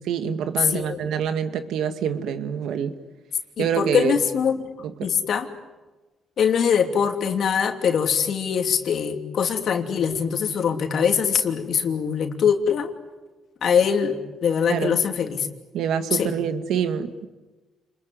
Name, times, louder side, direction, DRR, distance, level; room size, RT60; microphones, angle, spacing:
voice 1, 0.1-2.9 3.6-4.2 4.8-5.1 14.7-15.0 15.7-17.3, right 8 dB, 75° right, 9 dB, 2.0 m, -26 dB
voice 2, 0.7-1.0 3.6-4.6 5.0-5.5 6.4-12.9 13.6-15.5 16.1-16.3, left 7 dB, 60° left, 5 dB, 3.0 m, -22 dB
29.0 x 21.5 x 9.6 m, 1.2 s
cardioid pair, 80°, 0 cm